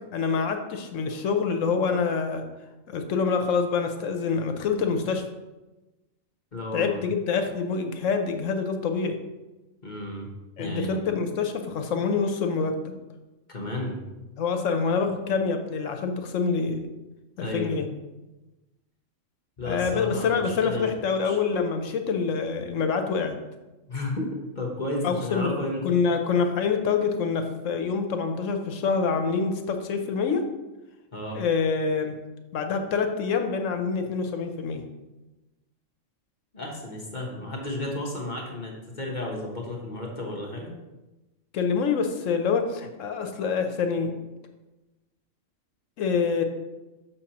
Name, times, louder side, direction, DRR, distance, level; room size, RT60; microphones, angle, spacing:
voice 1, 0.1-2.4 2.9-5.2 6.7-9.2 10.6-12.9 14.4-16.9 17.4-17.9 19.6-23.4 25.0-25.5 25.8-30.4 31.3-32.1 32.5-34.8 41.5-44.1 46.0-46.4, left 5 dB, 75° left, 6 dB, 1.1 m, -26 dB
voice 2, 6.5-7.0 9.8-10.3 10.6-11.0 13.5-14.0 17.4-17.8 19.6-20.9 21.2-21.4 23.9-24.3 24.5-25.8 31.1-31.4 36.5-40.7, left 1 dB, 40° left, -1 dB, 1.1 m, -32 dB
6.7 x 6.4 x 2.9 m, 1.1 s
omnidirectional pair, 1.3 m